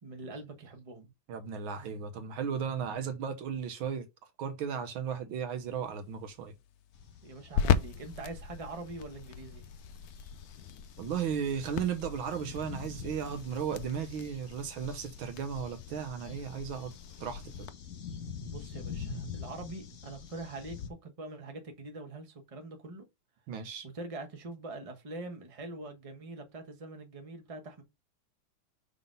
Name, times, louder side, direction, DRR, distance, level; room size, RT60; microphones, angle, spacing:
voice 1, 0.0-1.1 7.2-9.7 18.5-23.1 23.8-27.8, right 2 dB, 20° right, 1.0 m, -43 dB
voice 2, 1.3-4.1 4.4-6.5 11.0-16.9 17.2-17.7 23.5-23.9, right 7 dB, 75° right, 1.6 m, -35 dB
sound 1, 5.5-17.7, left 8 dB, 80° left, 0.8 m, -38 dB
sound 2, 6.9-20.9, left 6 dB, 50° left, 1.2 m, -46 dB
5.5 x 4.1 x 5.4 m
omnidirectional pair, 2.3 m